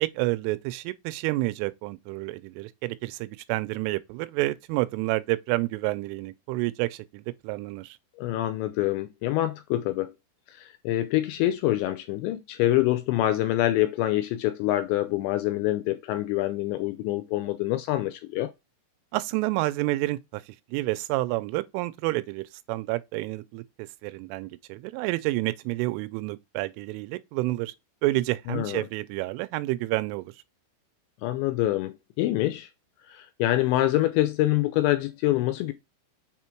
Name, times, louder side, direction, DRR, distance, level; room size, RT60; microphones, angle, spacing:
voice 1, 0.0-8.0 19.1-23.6 24.0-27.7 28.0-30.3, right 19 dB, 85° right, 3.1 m, -29 dB
voice 2, 8.2-10.1 10.5-18.5 28.5-28.8 31.2-32.7 33.1-35.7, left 15 dB, 80° left, 2.6 m, -26 dB
6.7 x 3.6 x 4.5 m
omnidirectional pair, 5.6 m